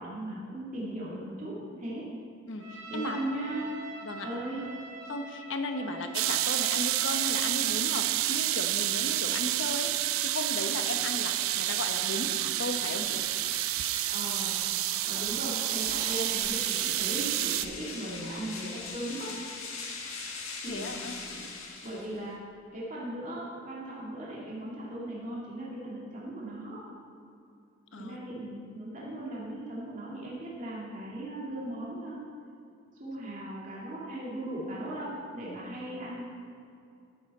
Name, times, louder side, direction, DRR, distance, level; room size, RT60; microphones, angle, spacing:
voice 1, 0.0-2.0 2.9-3.7 4.2-4.6 5.9-6.0 14.1-14.5 15.0-19.3 20.3-21.5 21.8-22.3 22.7-26.8 28.0-32.2 33.0-36.3, right 1 dB, 35° right, -7 dB, 2.2 m, -38 dB
voice 2, 2.5-3.2 4.0-4.3 5.1-13.2 20.7-21.1 27.9-28.2, left 2 dB, 65° left, 6 dB, 0.9 m, -36 dB
Trumpet, 2.6-7.3, right 2 dB, 60° right, 2.3 m, -44 dB
sound 1, 6.1-17.7, right 14 dB, 85° right, 0.4 m, -29 dB
sound 2, 12.7-22.3, left 4 dB, 85° left, 1.7 m, -42 dB
13.0 x 9.6 x 4.2 m, 2.5 s
head